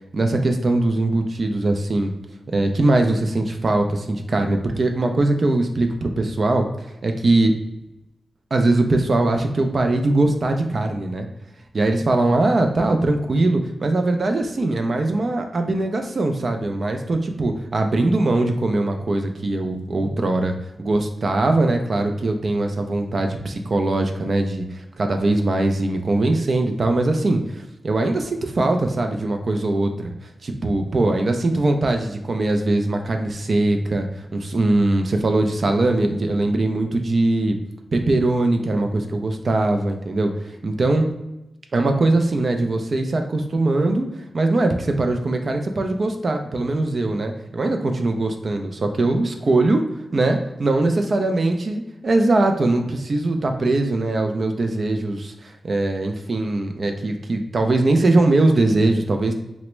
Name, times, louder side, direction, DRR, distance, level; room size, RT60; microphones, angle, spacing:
voice 1, 0.1-2.1 2.5-6.7 7.0-7.5 8.5-11.3 11.7-30.1 30.4-34.1 34.3-37.6 37.9-41.1 41.7-44.1 44.3-49.8 50.1-59.3, right 2 dB, 45° right, 5 dB, 0.3 m, -21 dB
3.3 x 2.0 x 3.0 m, 0.93 s
wide cardioid pair, 155°, 0 cm